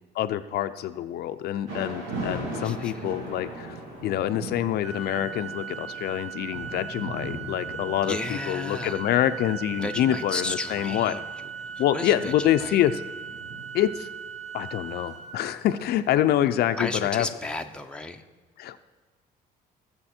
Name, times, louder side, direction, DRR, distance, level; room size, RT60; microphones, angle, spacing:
voice 1, 0.1-3.8 4.0-11.1 11.8-13.0 13.7-14.1 14.5-17.3 18.6-18.8, left 11 dB, 70° left, 10 dB, 0.6 m, -26 dB
Thunder / Rain, 1.7-17.7, right 1 dB, 85° right, 3.6 m, -40 dB
voice 2, 2.6-3.1 8.0-9.0 9.8-12.8 16.8-18.2, left 2 dB, 5° left, 4 dB, 0.9 m, -34 dB
Organ, 4.8-15.9, right 6 dB, 40° right, 1.2 m, -39 dB
19.0 x 7.1 x 4.4 m, 1.4 s
cardioid pair, 110°, 17 cm